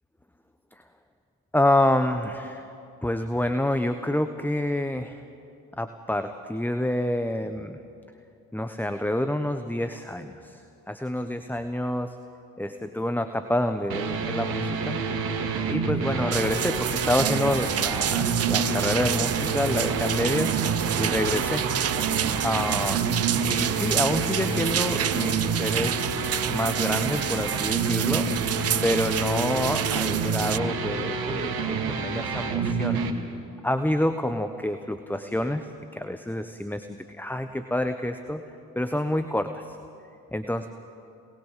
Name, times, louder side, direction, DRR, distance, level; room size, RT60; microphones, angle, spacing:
voice 1, 1.5-2.7 3.0-5.2 5.8-7.8 8.5-12.2 12.6-15.0 15.7-20.6 21.0-21.6 22.4-23.0 23.4-26.1 26.5-28.3 28.8-33.0 33.6-38.4 38.7-39.8 40.3-40.7, left 1 dB, 5° left, 8 dB, 1.2 m, -28 dB
sound 1, 13.9-33.1, right 5 dB, 60° right, 2.1 m, -28 dB
sound 2, 16.3-30.6, right 10 dB, 35° right, 0.7 m, -29 dB
27.5 x 19.5 x 7.7 m, 2.6 s
hypercardioid pair, 50°, 41 cm